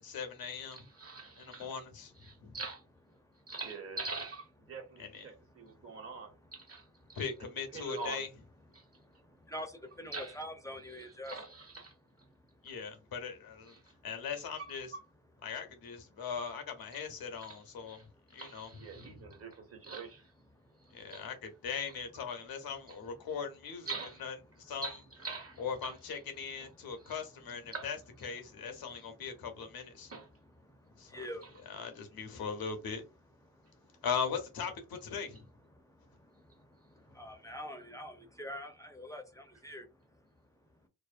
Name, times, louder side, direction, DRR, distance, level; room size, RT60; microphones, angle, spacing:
voice 1, 0.0-0.8 1.4-2.1 2.4-2.6 5.0-5.2 7.2-8.3 12.6-13.8 14.0-14.9 15.4-18.0 18.3-18.7 19.0-19.2 20.9-21.3 21.6-23.9 24.2-24.9 25.6-28.0 28.2-30.1 31.0-31.3 31.7-33.0 34.0-35.5, left 6 dB, 70° left, 0.8 m, -39 dB
voice 2, 0.7-1.7 2.2-2.8 3.5-8.3 8.7-8.9 9.5-9.6 10.1-10.4 10.9-11.9 13.7-13.9 14.6-14.7 16.9-17.0 17.4-20.3 21.1-21.2 22.9-23.0 23.9-24.2 24.8-26.0 26.6-26.7 27.0-27.2 27.7-27.9 29.0-29.1 30.1-30.3 31.4-31.5, right 3 dB, 40° right, 1.2 m, -44 dB
voice 3, 5.5-6.0 7.0-7.2 7.9-8.0 8.8-11.3 13.8-14.0 16.1-16.2 18.0-18.4 20.5-21.1 26.8-27.1 28.4-29.5 30.0-30.1 30.6-31.8 32.3-32.4 33.5-34.0 35.7-40.2, equal, 10° left, 0.6 m, -48 dB
2.6 x 2.0 x 2.5 m
supercardioid pair, 45°, 38 cm